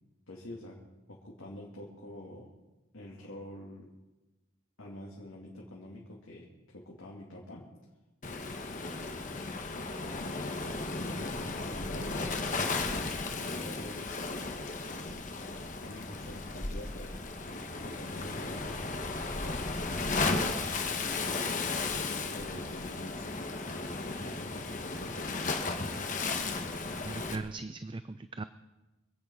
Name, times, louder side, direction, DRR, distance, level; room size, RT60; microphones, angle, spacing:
voice 1, 0.3-0.8 1.1-2.5 2.9-3.9 4.8-6.5 6.7-7.7 10.2-13.1 13.4-14.2 14.8-15.2 15.8-18.7 20.1-21.1 21.7-23.2 23.5-25.6, left 1 dB, 75° left, -3 dB, 2.7 m, -47 dB
Waves surf, 8.2-27.4, left 3 dB, 40° left, 1.3 m, -35 dB
voice 2, 27.0-28.4, right 3 dB, 25° right, 11 dB, 0.4 m, -39 dB
26.0 x 8.8 x 5.6 m, 1.1 s
head